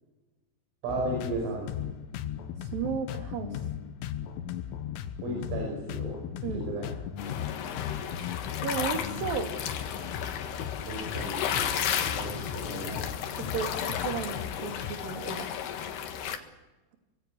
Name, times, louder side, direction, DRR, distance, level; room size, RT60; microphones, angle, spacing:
voice 1, 0.8-1.6 5.2-6.2 6.5-6.9 10.9-11.7 12.0-13.1, right 2 dB, 90° right, 0 dB, 8.3 m, -34 dB
sound 1, 0.9-14.9, left 9 dB, 90° left, 3.9 m, -38 dB
voice 2, 2.7-3.6 6.4-6.7 8.6-9.5 13.4-13.7 14.0-15.5, right 6 dB, 50° right, 5 dB, 3.8 m, -33 dB
sound 2, 7.2-16.4, left 8 dB, 65° left, 3.4 m, -33 dB
25.5 x 21.5 x 8.4 m, 1.1 s
omnidirectional pair, 5.7 m